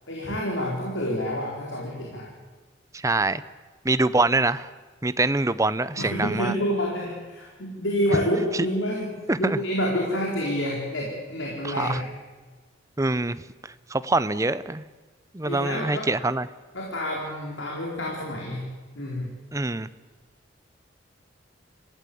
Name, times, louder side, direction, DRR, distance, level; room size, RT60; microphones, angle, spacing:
voice 1, 0.1-2.3 6.0-12.1 15.4-16.1 16.7-18.6 18.9-19.3, equal, 75° left, -2 dB, 4.4 m, -28 dB
voice 2, 2.9-3.4 3.8-4.7 5.0-6.5 8.5-8.7 9.3-9.6 11.6-12.0 13.0-13.4 13.9-14.8 15.3-16.5 19.5-19.9, right 2 dB, 15° right, 15 dB, 0.7 m, -24 dB
25.5 x 16.0 x 8.6 m, 1.4 s
head